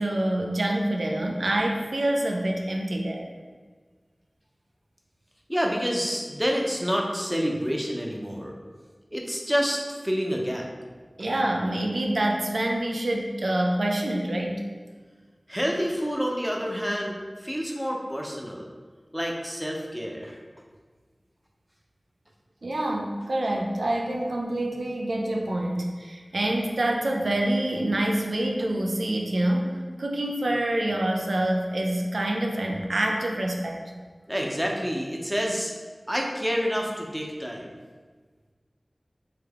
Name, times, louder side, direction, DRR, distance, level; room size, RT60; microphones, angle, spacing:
voice 1, 0.0-3.3 11.2-14.7 22.6-33.8, right 1 dB, 85° right, 0 dB, 0.4 m, -26 dB
voice 2, 5.5-8.5 9.1-10.6 15.5-18.7 19.1-20.4 34.3-35.7 36.1-37.7, equal, 5° right, 0 dB, 0.6 m, -28 dB
3.4 x 3.3 x 3.5 m, 1.5 s
wide cardioid pair, 50°, 0 cm